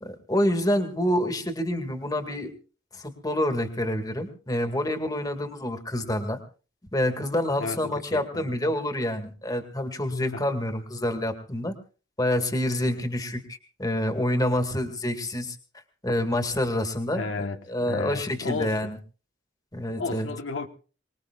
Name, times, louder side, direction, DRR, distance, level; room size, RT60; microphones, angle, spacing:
voice 1, 0.0-2.5 2.9-6.4 6.9-11.7 12.2-15.6 16.0-19.0 19.7-20.3, left 1 dB, 20° left, 2.1 m, -27 dB
voice 2, 7.6-8.5 10.3-10.4 17.1-18.8 20.0-20.7, left 3 dB, 85° left, 1.3 m, -33 dB
24.5 x 20.5 x 2.5 m
head